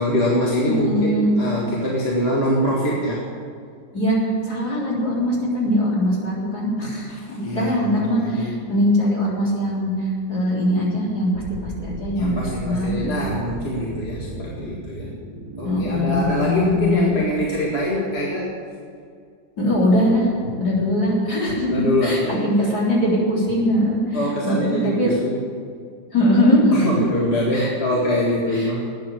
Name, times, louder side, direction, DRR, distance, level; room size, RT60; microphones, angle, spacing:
voice 1, 0.0-3.2 7.1-8.6 12.2-15.1 15.6-18.5 21.7-22.7 24.1-25.4 26.7-28.9, equal, 35° left, -4 dB, 2.2 m, -24 dB
voice 2, 0.6-1.3 3.9-13.2 15.6-17.1 19.6-20.3 20.6-21.7 22.0-25.2 26.1-27.0 27.5-28.0 28.5-28.7, left 1 dB, 55° left, -5 dB, 4.3 m, -21 dB
sound 1, 11.3-18.1, right 1 dB, 5° right, 2.3 m, -37 dB
13.0 x 9.5 x 9.0 m, 2.2 s
omnidirectional pair, 2.1 m